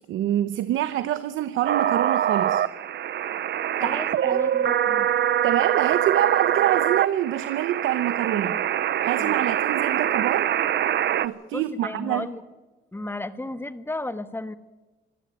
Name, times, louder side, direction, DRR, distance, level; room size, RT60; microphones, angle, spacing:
voice 1, 0.1-2.6 3.8-4.4 5.4-8.6 9.0-10.5 11.2-12.3, right 12 dB, 85° right, 13 dB, 0.9 m, -26 dB
sound 1, 1.7-11.3, right 10 dB, 60° right, 0.8 m, -24 dB
voice 2, 3.8-5.1 8.5-8.6 9.2-9.4 11.5-12.4 12.9-14.5, left 2 dB, 10° left, 12 dB, 1.4 m, -34 dB
26.0 x 11.5 x 9.5 m, 1.2 s
cardioid pair, 90°, 20 cm